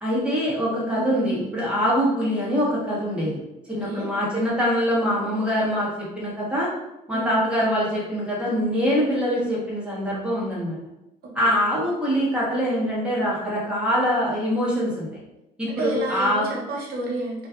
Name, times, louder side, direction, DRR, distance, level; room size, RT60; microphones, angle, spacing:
voice 1, 0.0-3.4 3.7-6.7 7.1-10.8 11.3-15.2 15.6-16.5, equal, 5° right, -7 dB, 1.0 m, -24 dB
voice 2, 15.7-17.5, right 2 dB, 65° right, -2 dB, 0.9 m, -30 dB
2.5 x 2.2 x 2.4 m, 0.91 s
cardioid pair, 110°, 17 cm